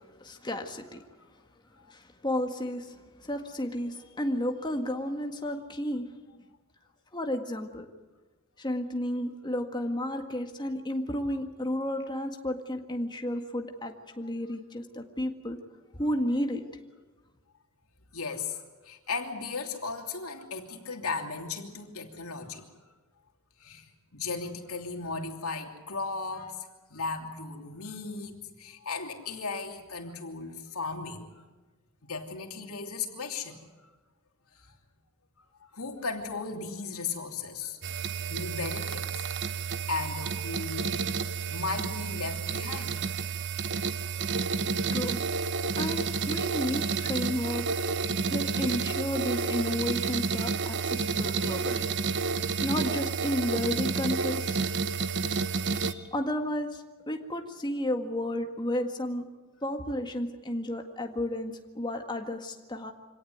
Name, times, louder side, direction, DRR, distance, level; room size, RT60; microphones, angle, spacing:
voice 1, 0.2-1.0 1.9-6.0 7.1-7.9 8.6-15.6 15.9-16.6 44.2-44.3 44.9-45.2 45.8-47.9 48.1-52.0 52.6-54.7 55.7-59.2 59.6-62.9, left 1 dB, 20° left, 4 dB, 1.8 m, -32 dB
voice 2, 18.1-22.7 23.6-31.3 32.1-33.9 34.5-34.7 35.6-38.0 38.3-39.1 39.9-41.0 41.5-43.0, left 4 dB, 75° left, 3 dB, 3.0 m, -36 dB
sound 1, 37.8-55.9, right 5 dB, 55° right, 1.1 m, -30 dB
25.5 x 17.5 x 9.4 m, 1.3 s
head